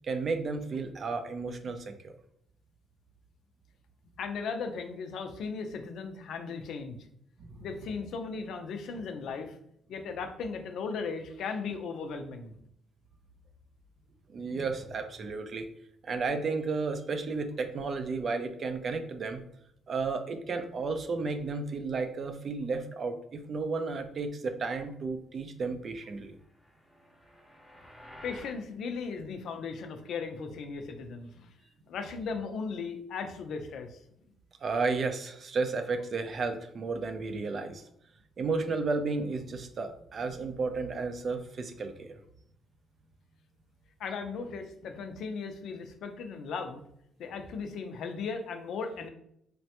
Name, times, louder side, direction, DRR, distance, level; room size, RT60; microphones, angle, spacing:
voice 1, 0.0-2.1 7.4-7.6 14.3-15.7 16.0-19.4 19.9-26.4 34.6-37.8 38.4-42.2, right 4 dB, 50° right, 7 dB, 0.4 m, -33 dB
voice 2, 4.2-7.0 7.6-9.5 9.9-12.5 28.2-31.5 31.9-34.0 44.0-46.8 47.2-49.1, left 5 dB, 75° left, 6 dB, 0.4 m, -37 dB
sound 1, 26.4-28.6, equal, 10° left, 0.6 m, -52 dB
3.2 x 2.1 x 2.8 m, 0.71 s
cardioid pair, 90°, 0 cm